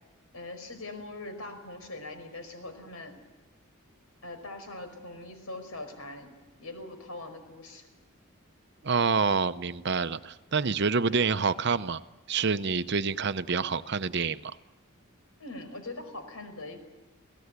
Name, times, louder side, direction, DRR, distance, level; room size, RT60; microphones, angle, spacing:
voice 1, 0.3-3.1 4.2-6.3 6.6-7.8 11.0-11.2 15.4-16.8, left 2 dB, 80° left, 7 dB, 5.0 m, -42 dB
voice 2, 8.8-12.0 12.3-14.5, right 5 dB, 55° right, 12 dB, 0.8 m, -27 dB
28.5 x 18.0 x 8.2 m, 1.1 s
head